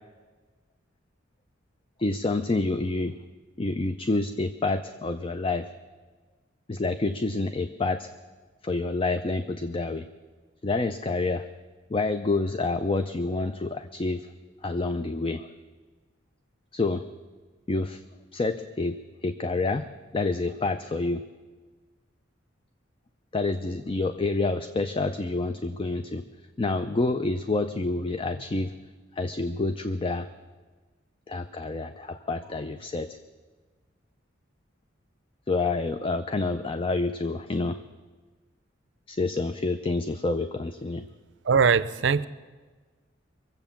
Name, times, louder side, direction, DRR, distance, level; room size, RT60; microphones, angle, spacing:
voice 1, 2.0-3.1 3.6-5.7 6.7-8.1 8.6-10.0 10.6-11.5 11.9-14.3 14.6-15.5 16.7-17.0 17.7-18.0 18.3-19.0 19.2-19.9 20.1-21.2 23.3-26.2 26.6-28.7 29.2-30.3 31.3-33.2 35.5-37.8 39.1-41.1, left 3 dB, 25° left, 9 dB, 0.4 m, -28 dB
voice 2, 41.5-42.3, right 6 dB, 65° right, 16 dB, 0.5 m, -21 dB
23.0 x 7.9 x 7.1 m, 1.4 s
head